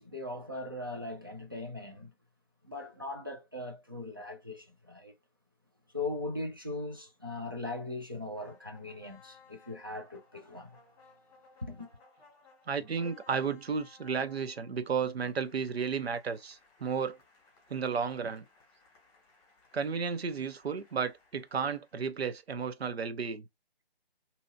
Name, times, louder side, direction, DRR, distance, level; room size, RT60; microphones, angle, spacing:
voice 1, 0.0-2.1 2.6-5.1 5.9-10.8 11.6-11.9, left 2 dB, 25° right, 0.3 m, -39 dB
sound 1, 8.3-22.5, left 4 dB, 15° left, 1.2 m, -61 dB
voice 2, 12.7-17.2 17.7-18.4 19.7-23.4, right 6 dB, 80° right, 0.6 m, -33 dB
2.7 x 2.6 x 2.2 m
figure-of-eight pair, 150°, 31 cm